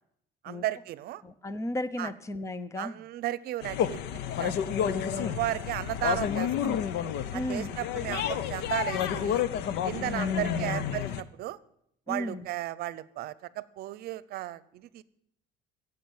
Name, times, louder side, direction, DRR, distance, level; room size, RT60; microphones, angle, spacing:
voice 1, 0.4-1.2 2.0-2.1 2.8-4.0 4.3-4.6 5.2-6.5 7.3-9.4 9.8-11.6 12.1-15.0, right 15 dB, 60° right, 18 dB, 0.7 m, -34 dB
voice 2, 1.2-3.0 4.6-5.4 6.6-6.9 7.3-7.8 10.2-10.9 12.1-12.5, left 1 dB, 15° left, 14 dB, 0.8 m, -35 dB
sound 1, 3.6-11.2, left 9 dB, 75° left, 0.9 m, -30 dB
16.0 x 8.1 x 8.9 m, 0.73 s
cardioid pair, 145°, 18 cm